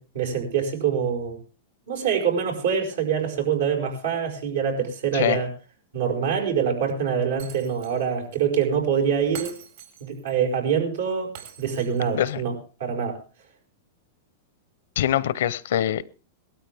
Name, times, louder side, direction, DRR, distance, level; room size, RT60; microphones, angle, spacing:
voice 1, 0.0-1.4 1.9-5.5 5.9-9.5 10.0-13.2, right 7 dB, 85° right, 1 dB, 5.4 m, -25 dB
Shatter, 7.4-8.1 8.3-8.4 9.3-10.3 11.3-12.3, right 9 dB, 65° right, 4.5 m, -43 dB
voice 2, 15.0-16.0, left 11 dB, 75° left, 19 dB, 0.7 m, -23 dB
19.0 x 13.0 x 3.5 m, 0.33 s
hypercardioid pair, 130°, 0 cm